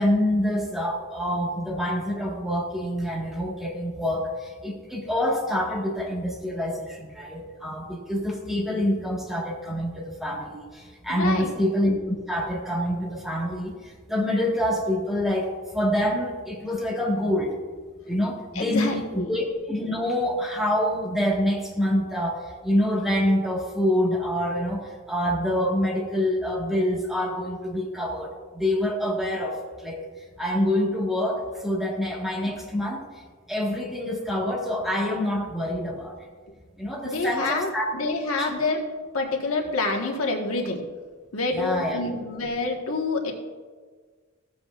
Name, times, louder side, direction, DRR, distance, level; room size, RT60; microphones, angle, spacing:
voice 1, 0.0-17.5 18.1-30.0 30.4-33.0 33.5-36.2 36.8-37.9 38.4-38.5 41.5-42.0, left 1 dB, ahead, -2 dB, 1.5 m, -26 dB
voice 2, 11.1-11.5 18.5-19.3 37.0-38.8 39.1-40.8 41.3-43.3, left 3 dB, 80° left, 1 dB, 1.3 m, -27 dB
15.0 x 7.8 x 2.4 m, 1.5 s
head